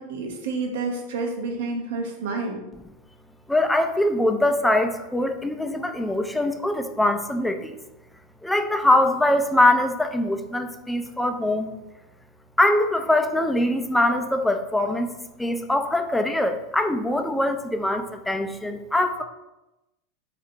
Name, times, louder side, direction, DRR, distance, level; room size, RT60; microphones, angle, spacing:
voice 1, 0.0-2.6, right 3 dB, 70° right, 1 dB, 0.5 m, -29 dB
voice 2, 3.5-7.8 8.4-11.7 12.6-15.1 15.4-19.2, left 1 dB, 5° left, 6 dB, 0.3 m, -22 dB
2.6 x 2.4 x 3.7 m, 0.98 s
figure-of-eight pair, 85°, 0 cm